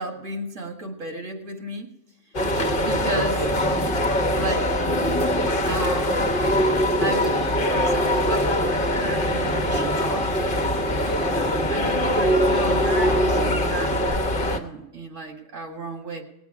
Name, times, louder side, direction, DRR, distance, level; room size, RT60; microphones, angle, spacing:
voice 1, 0.0-1.9 2.8-3.5 4.3-4.9 5.6-6.1 7.0-10.4 11.7-16.2, right 2 dB, 85° right, 3 dB, 2.1 m, -33 dB
sound 1, 2.3-14.6, equal, 45° left, 1.3 m, -22 dB
18.5 x 8.0 x 4.8 m, 0.97 s
omnidirectional pair, 1.3 m